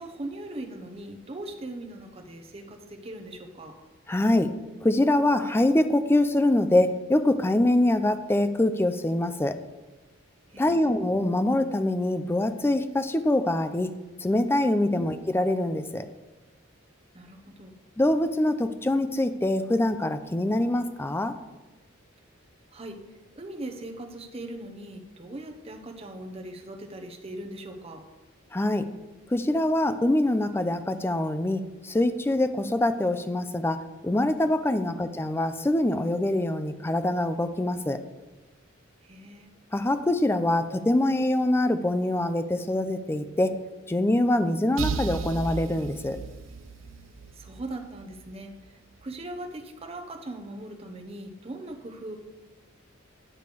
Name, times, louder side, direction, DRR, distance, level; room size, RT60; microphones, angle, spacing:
voice 1, 0.0-3.7 10.5-10.9 14.9-15.1 17.1-17.7 22.7-23.0 23.4-28.0 39.0-39.5 47.3-52.2, right 1 dB, 30° right, 4 dB, 0.8 m, -40 dB
voice 2, 4.1-4.5 4.8-9.6 10.6-13.9 14.2-16.1 18.0-21.3 28.5-28.9 29.3-38.0 39.7-43.5 43.9-46.2, left 1 dB, 10° left, 10 dB, 0.4 m, -24 dB
sound 1, 44.8-48.5, right 5 dB, 70° right, 0.5 m, -35 dB
9.7 x 3.3 x 6.7 m, 1.1 s
head